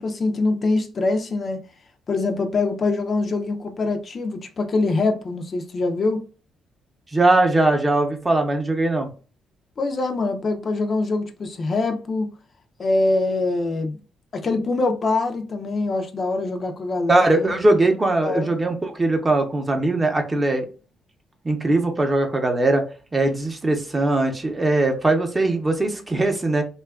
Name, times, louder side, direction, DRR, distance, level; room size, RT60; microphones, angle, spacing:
voice 1, 0.0-1.6 2.1-6.3 9.8-12.3 12.8-14.0 14.3-17.5 18.2-18.5, left 3 dB, 45° left, 0.4 m, -24 dB
voice 2, 7.1-9.1 17.1-20.7 21.4-22.8 23.1-26.6, right 2 dB, 25° right, 0.6 m, -20 dB
2.6 x 2.3 x 2.3 m
cardioid pair, 90°, 0 cm